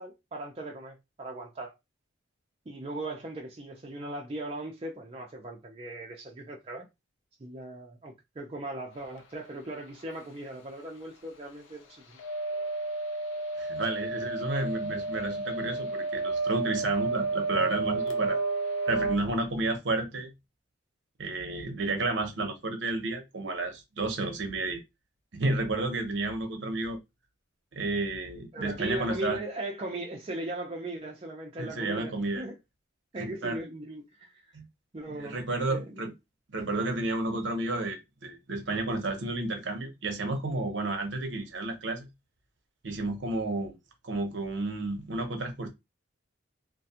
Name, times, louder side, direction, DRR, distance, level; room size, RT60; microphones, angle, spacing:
voice 1, 0.0-1.7 2.7-6.9 7.4-12.0 28.5-32.5 33.1-34.4 34.9-35.4 35.7-36.0, right 1 dB, 30° right, 0.4 m, -38 dB
sound 1, 12.2-19.2, right 3 dB, 75° left, 0.5 m, -31 dB
voice 2, 13.6-18.4 18.9-20.3 21.2-24.8 25.3-27.0 27.7-29.4 31.6-32.4 33.2-33.6 34.5-34.6 35.2-36.1 36.5-42.1 42.8-43.7 44.0-45.7, right 2 dB, 65° right, 0.7 m, -31 dB
2.4 x 2.2 x 2.7 m
head